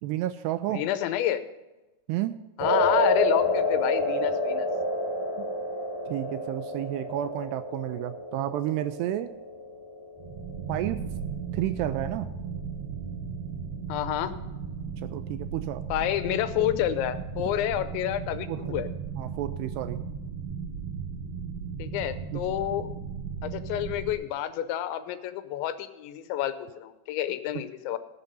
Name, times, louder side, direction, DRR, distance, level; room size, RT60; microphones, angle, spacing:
voice 1, 0.0-0.8 2.1-2.4 6.1-9.3 10.7-11.0 11.5-12.3 15.0-15.8 18.5-18.8 19.2-20.0 22.3-22.4, right 13 dB, 85° right, 11 dB, 2.5 m, -31 dB
voice 2, 0.7-1.4 2.6-4.7 13.9-14.3 15.9-18.9 21.8-22.9 23.4-28.0, left 12 dB, 85° left, 11 dB, 3.1 m, -29 dB
sound 1, 2.6-10.9, left 1 dB, 15° left, 4.2 m, -29 dB
sound 2, 10.2-24.1, right 6 dB, 60° right, 1.8 m, -36 dB
18.0 x 7.0 x 5.4 m, 1.1 s
omnidirectional pair, 5.1 m